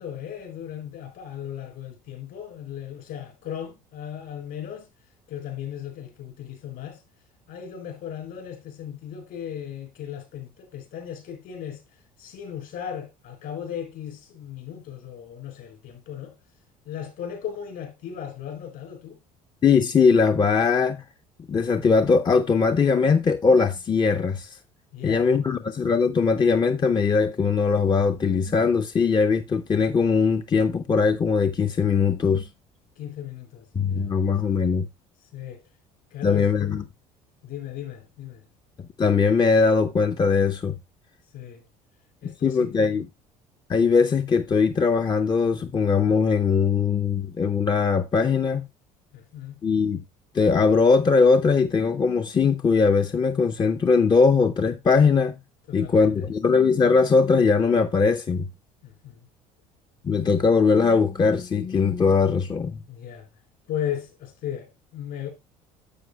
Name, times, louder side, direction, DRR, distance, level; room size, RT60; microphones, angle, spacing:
voice 1, 0.0-4.9 5.3-7.0 7.5-16.4 16.8-19.2 24.9-25.3 33.0-34.1 35.3-35.6 36.1-36.7 37.4-38.5 41.3-41.6 42.2-43.0 49.1-49.6 55.7-56.3 58.8-59.3 62.9-63.3 63.7-65.3, left 9 dB, 60° left, 4.2 m, -36 dB
voice 2, 19.6-21.0 21.5-24.6 25.0-32.5 33.7-34.9 36.2-36.8 39.0-40.7 42.2-43.1 43.7-48.7 49.6-50.0 50.3-55.4 55.7-58.5 60.0-62.8, left 5 dB, 25° left, 0.6 m, -20 dB
11.5 x 7.6 x 2.2 m
hypercardioid pair, 65°, 18 cm